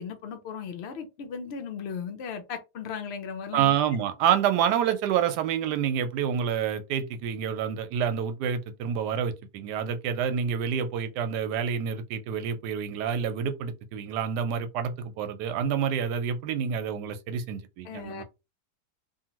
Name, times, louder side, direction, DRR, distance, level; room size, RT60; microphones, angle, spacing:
voice 1, 0.0-3.7 17.8-18.2, left 6 dB, 75° left, 0.6 m, -36 dB
voice 2, 3.5-18.2, right 8 dB, 85° right, 1.2 m, -28 dB
2.8 x 2.5 x 2.9 m
omnidirectional pair, 1.7 m